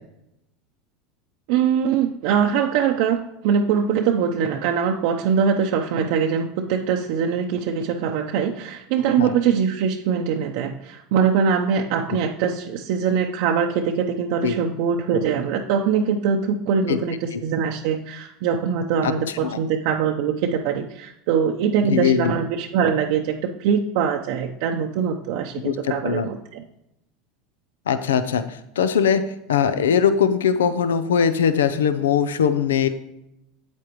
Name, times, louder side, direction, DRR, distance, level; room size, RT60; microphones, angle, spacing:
voice 1, 1.5-26.6, right 7 dB, 65° right, 1 dB, 0.7 m, -22 dB
voice 2, 21.8-22.3 25.6-26.3 27.9-29.2 29.5-32.9, left 7 dB, 90° left, 12 dB, 0.5 m, -21 dB
8.5 x 8.3 x 3.0 m, 0.83 s
hypercardioid pair, 100°, 0 cm